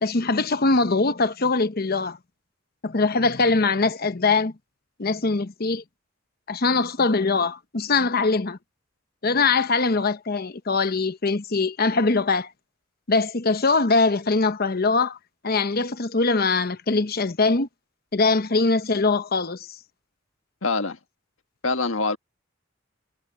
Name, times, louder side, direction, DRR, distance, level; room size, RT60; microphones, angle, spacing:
voice 1, 0.0-2.2 2.8-4.5 5.0-5.8 6.5-8.6 9.2-12.5 13.1-15.2 15.4-17.7 18.1-19.7, left 3 dB, 50° left, 1.0 m, -22 dB
voice 2, 20.6-21.0 21.6-22.2, left 3 dB, 85° left, 1.5 m, -24 dB
head